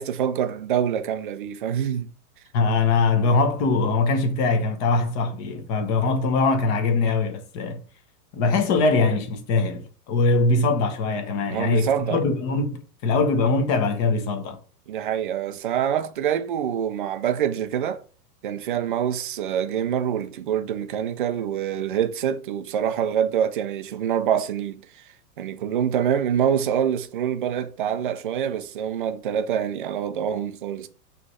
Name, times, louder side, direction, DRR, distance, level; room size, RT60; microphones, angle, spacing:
voice 1, 0.0-2.1 11.5-12.2 14.9-18.0 18.4-24.8 25.4-30.9, right 9 dB, 35° right, 0.4 m, -25 dB
voice 2, 2.5-7.8 8.3-14.6, left 3 dB, 25° left, 0.9 m, -22 dB
6.1 x 3.2 x 5.3 m
supercardioid pair, 160°, 48 cm